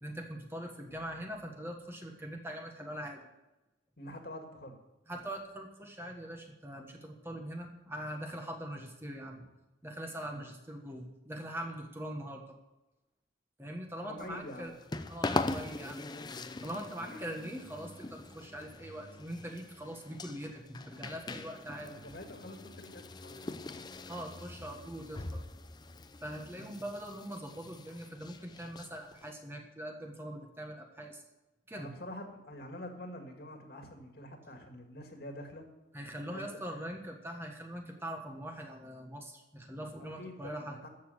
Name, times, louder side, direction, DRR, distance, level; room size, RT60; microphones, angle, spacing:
voice 1, 0.0-3.2 5.1-9.4 9.8-12.4 13.6-14.7 15.1-16.0 16.6-22.0 24.1-25.4 26.2-31.2 31.7-31.9 35.9-40.8, right 1 dB, 15° right, 2 dB, 1.4 m, -42 dB
voice 2, 4.0-4.8 9.4-9.5 10.3-10.5 14.0-14.7 17.0-17.4 21.3-21.5 21.8-24.0 26.4-26.7 31.8-35.6 36.3-36.5 36.8-36.9 40.0-40.9, left 1 dB, 55° left, 4 dB, 2.2 m, -47 dB
sound 1, 14.2-29.3, left 2 dB, 25° left, 0.6 m, -42 dB
13.5 x 7.0 x 7.9 m, 1.0 s
head